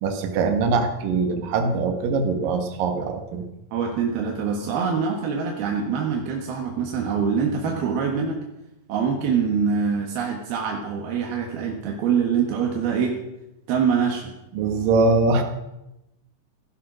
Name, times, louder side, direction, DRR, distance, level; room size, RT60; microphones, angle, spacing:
voice 1, 0.0-3.4 14.5-15.4, right 4 dB, 70° right, 5 dB, 3.1 m, -22 dB
voice 2, 3.7-8.4 8.9-13.2 13.7-14.3, right 6 dB, 85° right, 1 dB, 3.5 m, -24 dB
16.0 x 13.5 x 6.3 m, 0.92 s
omnidirectional pair, 4.2 m